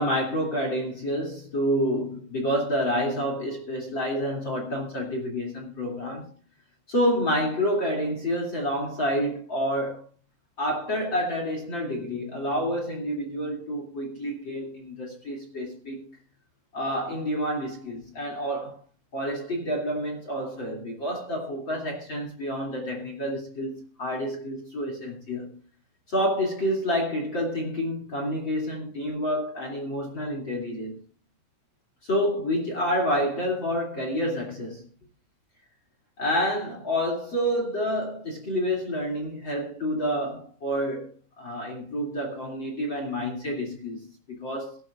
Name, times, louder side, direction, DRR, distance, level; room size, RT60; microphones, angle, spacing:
voice 1, 0.0-6.2 6.9-10.0 10.6-16.0 16.7-18.8 19.1-25.6 26.1-31.0 32.0-34.8 36.2-44.8, equal, 35° left, 2.2 m, -28 dB
23.0 x 11.0 x 2.5 m
omnidirectional pair, 5.9 m